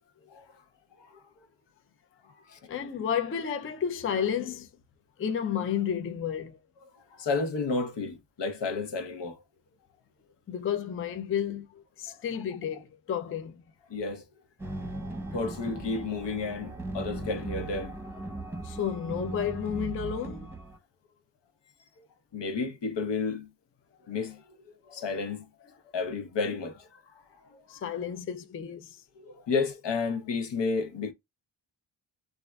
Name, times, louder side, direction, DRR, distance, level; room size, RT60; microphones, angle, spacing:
voice 1, 2.5-4.7 5.2-6.6 10.5-13.6 18.6-20.5 27.5-29.0, left 8 dB, 30° left, 0.4 m, -32 dB
voice 2, 7.1-9.3 12.1-12.2 13.9-14.2 15.3-18.6 22.0-22.1 22.3-23.5 24.1-24.4 24.9-25.5 25.9-27.0 27.7-27.8 29.2-31.1, left 4 dB, 70° left, 0.9 m, -32 dB
sound 1, 14.6-20.8, right 2 dB, 5° right, 0.8 m, -38 dB
3.5 x 2.5 x 2.2 m
wide cardioid pair, 105°, 44 cm